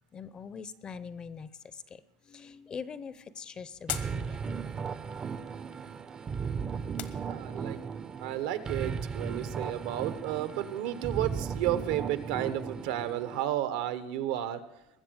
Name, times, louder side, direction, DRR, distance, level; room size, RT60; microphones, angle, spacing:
voice 1, 0.1-4.6, left 6 dB, 25° left, 16 dB, 0.6 m, -43 dB
sound 1, 2.4-7.9, left 13 dB, 60° left, 1.1 m, -45 dB
sound 2, 3.9-13.4, right 6 dB, 25° right, 0.6 m, -36 dB
voice 2, 7.2-7.8 8.2-14.6, right 12 dB, 75° right, 11 dB, 1.1 m, -32 dB
21.0 x 7.5 x 6.4 m, 0.87 s
supercardioid pair, 135°, 3 cm